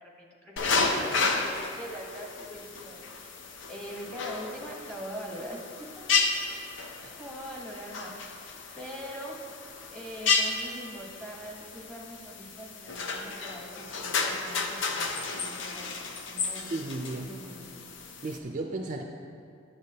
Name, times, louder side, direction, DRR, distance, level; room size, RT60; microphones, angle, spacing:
voice 1, 0.0-3.4 3.7-5.9 7.2-8.4 8.8-9.4 9.8-16.7 17.1-17.9, equal, 5° left, -2 dB, 0.9 m, -42 dB
sound 1, 0.6-18.4, left 4 dB, 65° left, 0.6 m, -32 dB
voice 2, 16.7-17.3 18.2-19.0, right 2 dB, 40° right, 2 dB, 0.4 m, -34 dB
10.5 x 6.8 x 2.8 m, 2.4 s
head